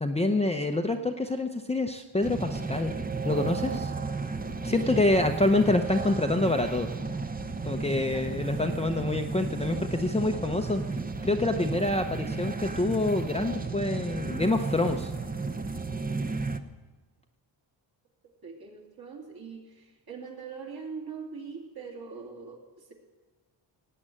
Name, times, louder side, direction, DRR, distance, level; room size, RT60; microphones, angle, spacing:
voice 1, 0.0-3.0 3.2-3.7 4.6-6.9 7.7-10.8 11.2-15.1, left 2 dB, 15° left, 4 dB, 0.7 m, -26 dB
sound 1, 2.2-16.6, right 3 dB, 20° right, 0.8 m, -33 dB
voice 2, 7.9-8.2 18.4-22.9, right 5 dB, 50° right, -2 dB, 3.2 m, -42 dB
17.5 x 7.9 x 8.8 m, 1.3 s
cardioid pair, 105°, 48 cm